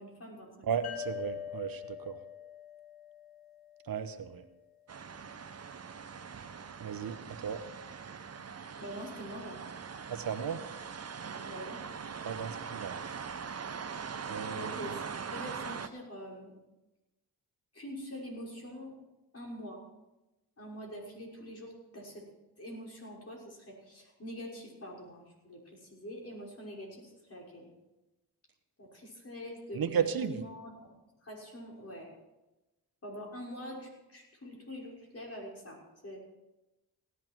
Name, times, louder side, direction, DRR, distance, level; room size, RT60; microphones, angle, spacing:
voice 1, 0.0-0.7 8.8-9.6 11.4-11.8 14.6-16.5 17.7-18.9 19.3-19.8 20.6-22.2 22.6-27.7 28.8-30.9 31.2-32.1 33.0-36.2, equal, 40° left, -2 dB, 6.0 m, -45 dB
voice 2, 0.7-2.2 3.9-4.4 6.8-7.6 10.1-10.6 12.2-13.0 14.3-14.7 29.7-30.4, right 7 dB, 65° right, 9 dB, 1.1 m, -34 dB
sound 1, 0.8-4.3, left 10 dB, 75° left, 2.5 m, -44 dB
sound 2, 4.9-15.9, right 6 dB, 40° right, 1.0 m, -42 dB
17.5 x 11.5 x 4.7 m, 1.0 s
cardioid pair, 65°, 38 cm